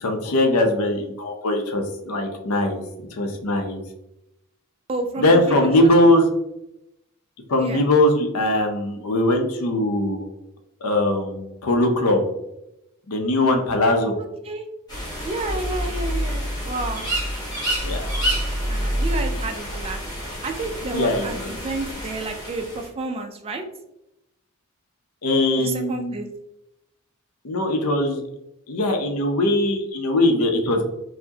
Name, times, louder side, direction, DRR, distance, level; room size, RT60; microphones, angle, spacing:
voice 1, 0.0-2.8 3.2-3.8 5.2-6.2 7.5-10.3 10.8-12.2 13.1-14.1 17.8-18.1 20.9-21.5 25.2-26.1 27.4-28.2 28.7-30.8, left 1 dB, 80° left, 4 dB, 0.6 m, -20 dB
voice 2, 4.9-5.9 7.6-7.8 14.2-14.7 15.2-17.0 18.7-20.0 20.4-23.6 25.6-26.3, right 2 dB, 25° right, 5 dB, 0.3 m, -30 dB
sound 1, 14.9-22.9, equal, 20° left, 1.2 m, -27 dB
4.5 x 2.1 x 2.7 m, 0.87 s
head